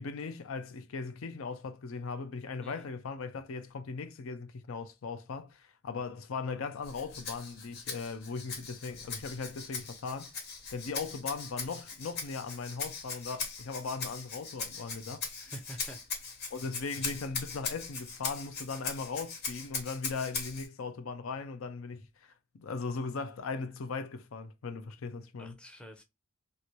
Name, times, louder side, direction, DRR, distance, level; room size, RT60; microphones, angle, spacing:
voice 1, 0.0-10.3 10.7-15.2 16.5-25.6, left 4 dB, 65° left, 0.5 m, -38 dB
Rattle (instrument), 6.8-20.7, left 5 dB, 50° left, 1.1 m, -40 dB
voice 2, 15.4-16.0 25.4-26.0, right 1 dB, 5° left, 0.5 m, -47 dB
2.8 x 2.5 x 3.0 m
head